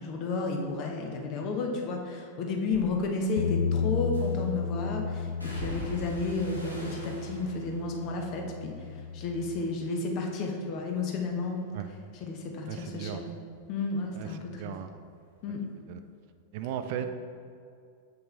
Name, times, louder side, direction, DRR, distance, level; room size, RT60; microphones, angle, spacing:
voice 1, 0.0-8.7 9.1-11.6 12.2-13.3 13.7-14.6 15.4-15.6, left 3 dB, 40° left, 1 dB, 1.0 m, -32 dB
sound 1, 2.7-2.9 4.1-4.6 5.4-9.6 10.0-10.6 11.0-14.2 14.5-15.6 15.9-16.1, right 1 dB, 90° left, 1.3 m, -46 dB
Bass guitar, 3.4-9.6, left 6 dB, 60° left, 0.4 m, -33 dB
voice 2, 12.7-13.2 14.1-15.0 15.9-16.0 16.5-17.1, right 10 dB, 50° right, 9 dB, 0.4 m, -36 dB
7.2 x 5.7 x 3.4 m, 2.3 s
figure-of-eight pair, 90°, 0 cm